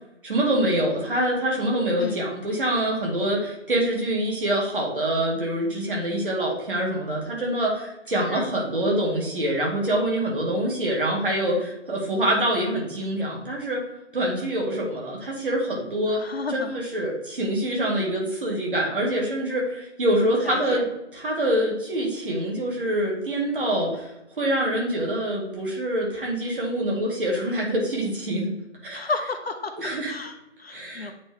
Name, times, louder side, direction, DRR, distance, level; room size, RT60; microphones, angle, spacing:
voice 1, 0.2-13.8 14.1-20.9 21.1-24.1 24.4-28.5 28.8-29.1 29.8-30.1 30.7-31.1, right 1 dB, 45° right, -2 dB, 2.0 m, -25 dB
voice 2, 16.1-16.7 20.4-20.8 28.9-29.7 30.1-31.1, left 3 dB, 55° left, 6 dB, 0.7 m, -32 dB
8.8 x 3.1 x 3.6 m, 0.91 s
figure-of-eight pair, 160°, 37 cm